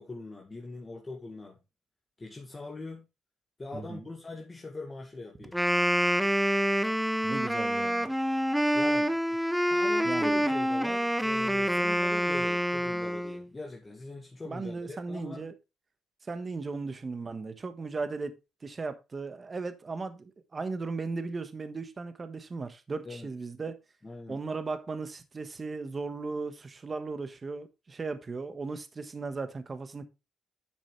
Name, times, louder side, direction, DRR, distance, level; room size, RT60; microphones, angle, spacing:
voice 1, 0.0-1.6 2.2-3.1 3.6-5.6 8.7-9.2 9.7-15.5 23.1-23.3 24.0-24.4, left 3 dB, 25° left, 1.9 m, -42 dB
voice 2, 3.7-4.0 7.2-8.1 10.0-10.4 14.4-15.5 16.3-18.3 18.6-23.8 24.3-30.1, right 4 dB, 35° right, 1.4 m, -36 dB
Wind instrument woodwind instrument, 5.4-13.5, equal, 5° right, 0.8 m, -27 dB
10.5 x 6.1 x 3.3 m
cardioid pair, 90°, 0 cm